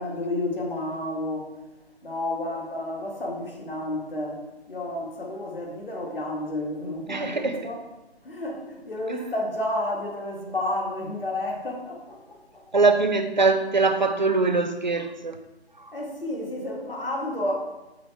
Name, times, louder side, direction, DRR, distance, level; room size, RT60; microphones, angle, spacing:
voice 1, 0.0-1.5 2.0-4.4 4.7-7.8 8.2-12.6 15.9-17.5, left 1 dB, 55° left, 0 dB, 1.7 m, -31 dB
voice 2, 7.1-7.7 12.7-15.4 15.8-15.9, right 3 dB, 45° right, 8 dB, 0.5 m, -22 dB
7.0 x 3.3 x 4.5 m, 1.0 s
figure-of-eight pair, 155°, 33 cm